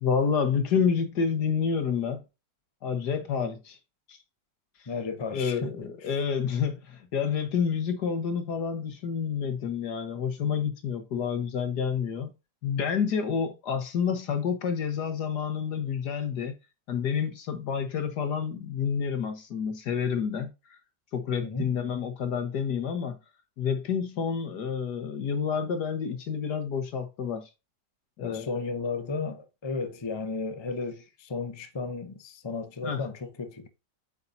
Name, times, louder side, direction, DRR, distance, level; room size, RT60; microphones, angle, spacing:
voice 1, 0.0-2.2 2.8-3.8 4.1-4.2 5.3-12.3 12.6-16.5 16.9-20.5 21.1-23.2 23.6-27.5 28.2-28.6 32.8-33.0, left 6 dB, 70° left, 1.9 m, -29 dB
voice 2, 4.9-6.2 21.4-21.7 28.2-33.7, left 4 dB, 30° left, 0.5 m, -34 dB
8.4 x 5.7 x 2.7 m
omnidirectional pair, 1.9 m